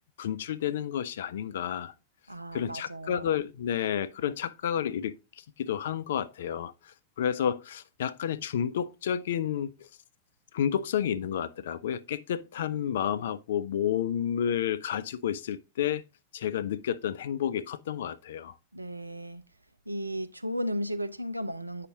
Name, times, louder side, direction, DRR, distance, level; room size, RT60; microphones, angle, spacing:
voice 1, 0.2-1.9 2.5-9.9 10.5-16.0 16.3-18.5, left 9 dB, 60° left, 0.5 m, -31 dB
voice 2, 2.3-3.3 18.7-19.4 19.9-21.9, equal, 85° right, 0.7 m, -34 dB
8.3 x 5.8 x 3.7 m
figure-of-eight pair, 90°, 0 cm